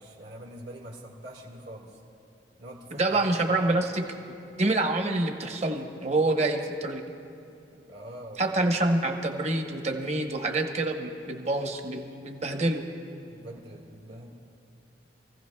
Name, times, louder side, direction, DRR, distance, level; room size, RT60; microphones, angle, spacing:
voice 1, 0.0-2.0 2.6-3.8 7.7-8.5 13.3-14.3, right 1 dB, 65° right, -3 dB, 1.7 m, -44 dB
voice 2, 2.9-4.0 4.6-7.0 8.4-12.8, right 2 dB, 35° right, 4 dB, 1.0 m, -27 dB
27.0 x 15.5 x 2.3 m, 2.6 s
head